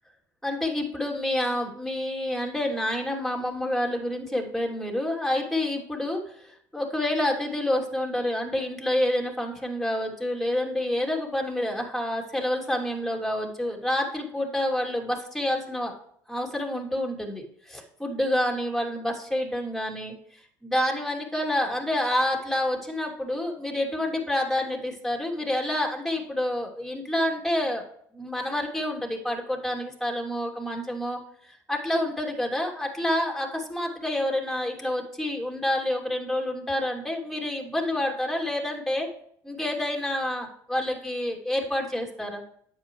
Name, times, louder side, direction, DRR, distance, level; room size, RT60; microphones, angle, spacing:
voice 1, 0.4-15.9 16.3-20.1 20.6-27.8 28.1-39.1 39.4-42.4, left 1 dB, ahead, 1 dB, 3.0 m, -28 dB
9.7 x 7.8 x 3.2 m, 0.65 s
supercardioid pair, 75°, 9 cm